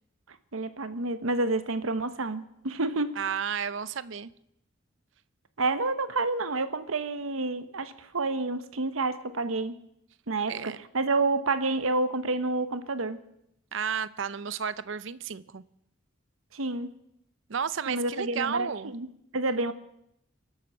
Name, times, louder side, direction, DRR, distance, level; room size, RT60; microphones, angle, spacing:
voice 1, 0.5-3.1 5.6-9.8 10.3-13.2 16.5-16.9 17.9-19.1 19.3-19.7, right 3 dB, 85° right, 1.1 m, -29 dB
voice 2, 3.2-4.3 10.5-10.8 13.7-15.6 17.5-18.9, right 7 dB, 65° right, 0.6 m, -32 dB
23.5 x 7.9 x 6.3 m
head